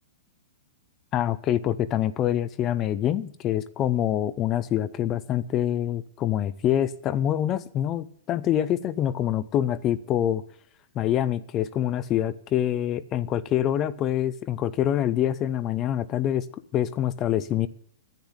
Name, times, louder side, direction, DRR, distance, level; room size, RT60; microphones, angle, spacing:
voice 1, 1.1-10.4 10.9-16.5 16.7-17.7, left 11 dB, 30° left, 15 dB, 0.6 m, -25 dB
10.5 x 7.9 x 9.8 m, 0.64 s
hypercardioid pair, 140°, 0 cm